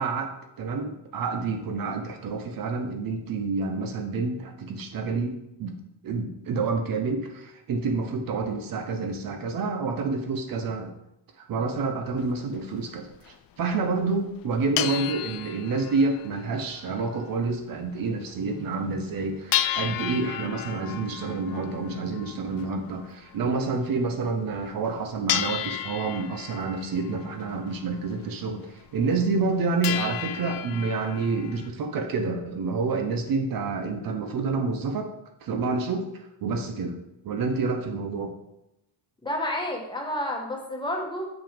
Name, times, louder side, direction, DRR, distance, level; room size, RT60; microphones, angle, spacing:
voice 1, 0.0-5.8 6.0-10.9 11.4-35.1 35.4-37.0 37.2-38.4, right 4 dB, 45° right, 6 dB, 0.9 m, -28 dB
sound 1, 12.2-12.3 12.9-13.0 13.1-13.3 14.0-14.1 14.4-17.5 17.8-17.9 18.3-18.4 18.7-18.8 19.5-24.0 24.7-24.9 25.3-28.3 28.6-28.7 29.1-29.6 29.8-31.7, left 12 dB, 50° left, 0.4 m, -33 dB
voice 2, 39.2-41.3, left 1 dB, 10° left, 0 dB, 1.3 m, -30 dB
7.2 x 6.2 x 5.1 m, 0.86 s
cardioid pair, 165°, 46 cm